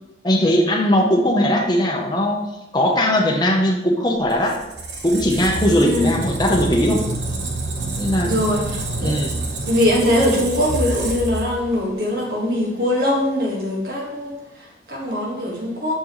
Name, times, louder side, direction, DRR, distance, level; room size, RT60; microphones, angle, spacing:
voice 1, 0.2-2.4 2.7-4.6 5.0-7.0 8.0-8.4 9.0-9.3, left 1 dB, 25° left, 0.8 m, -19 dB
Squeak, 4.2-11.9, right 2 dB, 75° right, 1.0 m, -27 dB
voice 2, 5.7-6.2 8.2-9.3 9.7-16.0, left 1 dB, 55° right, 1.7 m, -22 dB
6.5 x 5.9 x 3.1 m
head